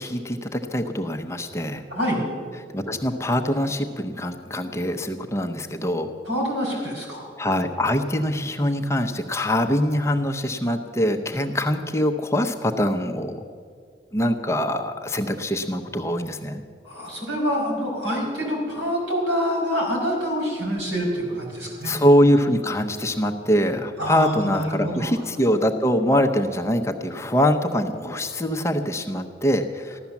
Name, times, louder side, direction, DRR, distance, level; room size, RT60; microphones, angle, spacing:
voice 1, 0.0-1.8 2.7-6.1 7.4-13.4 14.1-16.6 21.8-30.0, equal, 15° left, 5 dB, 0.7 m, -23 dB
voice 2, 1.9-2.2 6.3-7.3 16.8-21.9 24.0-25.1, equal, 85° right, -2 dB, 5.2 m, -26 dB
15.0 x 12.0 x 7.1 m, 2.2 s
head